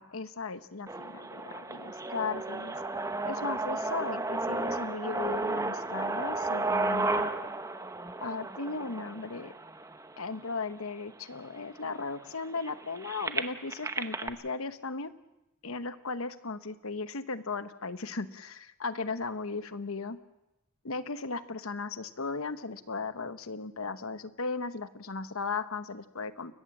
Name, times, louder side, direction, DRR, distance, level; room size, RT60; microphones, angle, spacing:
voice 1, 0.0-2.7 3.2-7.3 8.2-9.5 10.2-15.1 15.6-20.2 20.8-26.5, left 4 dB, 75° left, 12 dB, 1.0 m, -36 dB
sound 1, 0.9-10.8 11.5-11.6 11.8-14.3, right 2 dB, 15° right, 0.9 m, -33 dB
29.5 x 15.0 x 7.4 m, 0.92 s
head